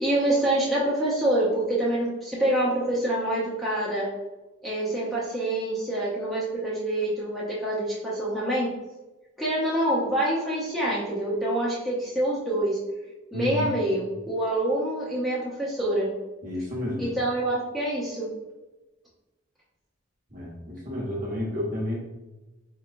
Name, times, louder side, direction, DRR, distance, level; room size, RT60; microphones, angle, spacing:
voice 1, 0.0-4.1 4.6-8.7 9.4-12.8 13.3-16.1 17.0-18.3, right 1 dB, ahead, -8 dB, 0.6 m, -26 dB
voice 2, 13.3-13.7 16.4-17.1 20.3-22.0, left 1 dB, 40° right, -4 dB, 1.0 m, -31 dB
4.5 x 3.0 x 2.5 m, 1.1 s
head